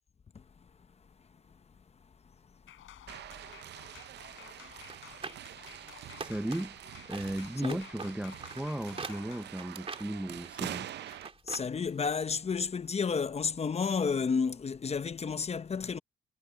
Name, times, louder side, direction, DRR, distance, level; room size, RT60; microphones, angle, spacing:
sound 1, 2.7-9.5, left 13 dB, 80° left, 7.5 m, -53 dB
sound 2, 3.1-11.3, right 12 dB, 60° right, 0.5 m, -45 dB
sound 3, 4.8-6.8 7.1-11.7 12.0-12.1, right 4 dB, 30° right, 2.5 m, -44 dB
voice 1, 6.2-6.8 7.1-10.9, right 1 dB, 5° right, 0.6 m, -36 dB
voice 2, 11.5-16.0, left 5 dB, 30° left, 0.8 m, -31 dB
cardioid pair, 90°, 20 cm